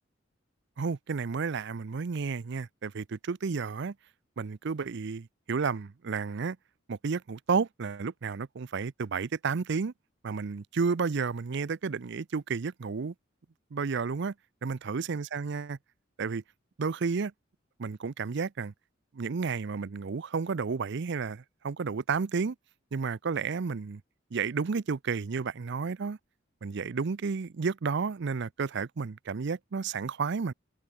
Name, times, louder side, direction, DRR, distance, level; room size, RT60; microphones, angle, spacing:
voice 1, 0.8-3.9 4.4-6.6 6.9-9.9 10.2-13.1 13.7-14.3 14.6-15.8 16.2-16.4 16.8-17.3 17.8-18.7 19.1-22.6 22.9-24.0 24.3-26.2 26.6-30.5, right 5 dB, 60° right, 0.5 m, -31 dB
head